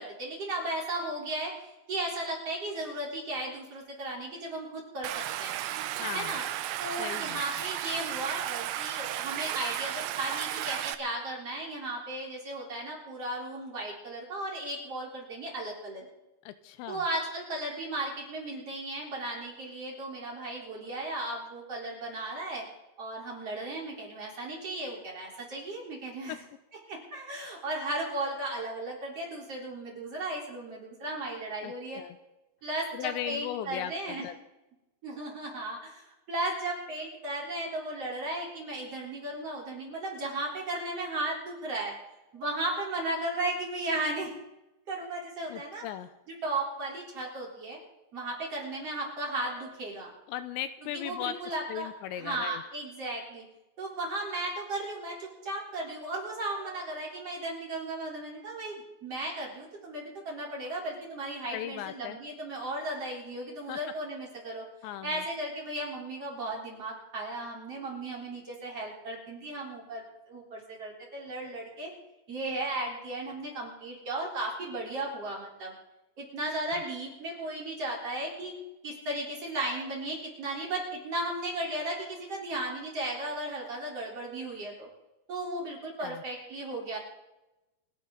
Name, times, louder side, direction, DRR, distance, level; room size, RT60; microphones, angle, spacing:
voice 1, 0.0-5.6 6.1-6.4 6.8-16.1 16.9-22.7 23.0-26.4 26.9-32.0 32.6-34.3 35.0-42.0 42.3-44.3 44.9-45.8 46.4-47.8 48.1-50.1 50.9-51.9 52.1-53.4 53.8-64.7 65.0-71.9 72.3-75.7 76.2-78.5 78.8-84.9 85.3-87.0, right 2 dB, 35° right, -2 dB, 4.5 m, -35 dB
Stream, 5.0-11.0, right 13 dB, 90° right, 3.2 m, -34 dB
voice 2, 6.0-6.4 7.0-7.4 16.4-17.0 26.3-26.4 31.6-32.2 32.9-34.4 45.5-46.1 50.3-51.4 51.7-52.6 61.5-62.2 63.7-63.8 64.8-65.3 86.0-86.2, left 11 dB, 80° left, 11 dB, 2.9 m, -37 dB
29.5 x 11.0 x 3.9 m, 0.96 s
omnidirectional pair, 5.3 m